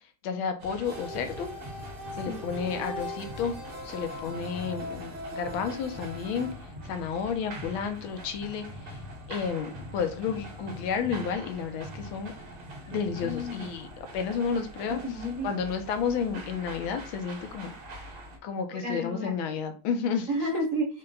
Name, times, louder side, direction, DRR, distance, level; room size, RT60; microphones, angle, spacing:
voice 1, 0.0-1.5 2.2-3.5 3.8-6.5 6.9-9.0 9.3-12.3 12.9-15.0 15.4-17.7 18.4-20.3, left 6 dB, 80° left, 7 dB, 1.5 m, -31 dB
sound 1, 0.6-18.4, equal, 90° right, 2.2 m, -43 dB
sound 2, 0.9-6.5, left 1 dB, 65° right, 0.7 m, -41 dB
voice 2, 2.1-2.4 12.9-13.7 14.9-15.5 18.8-19.3 20.3-20.9, equal, 50° right, 0 dB, 1.1 m, -32 dB
5.6 x 2.2 x 3.8 m, 0.39 s
omnidirectional pair, 2.3 m